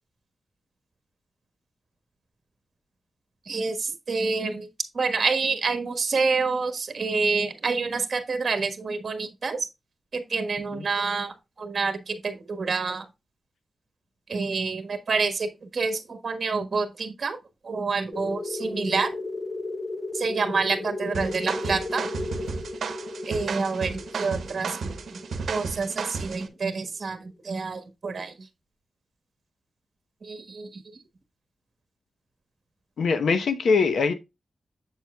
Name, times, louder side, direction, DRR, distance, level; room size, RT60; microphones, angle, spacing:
voice 1, 3.5-4.7 4.9-9.7 10.1-13.0 14.3-17.4 17.6-19.1 20.1-22.1 23.3-24.9 25.5-28.3 30.2-30.8, right 4 dB, 45° right, 1.3 m, -28 dB
sound 1, 18.1-26.5, left 2 dB, 15° left, 0.6 m, -35 dB
sound 2, 21.1-26.5, right 5 dB, 75° right, 0.9 m, -33 dB
voice 2, 33.0-34.1, left 5 dB, 85° left, 0.9 m, -22 dB
7.5 x 7.3 x 2.3 m
wide cardioid pair, 170°, 0 cm